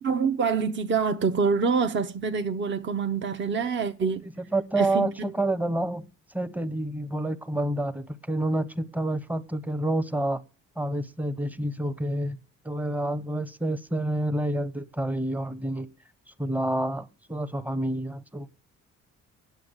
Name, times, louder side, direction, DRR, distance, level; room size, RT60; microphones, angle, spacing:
voice 1, 0.0-4.2 4.7-5.1, right 5 dB, 40° right, 0.8 m, -26 dB
voice 2, 4.2-6.1 6.3-10.4 10.8-12.4 12.6-15.9 16.4-18.5, right 1 dB, 5° right, 0.8 m, -28 dB
9.2 x 7.3 x 8.0 m
cardioid pair, 90°, 30 cm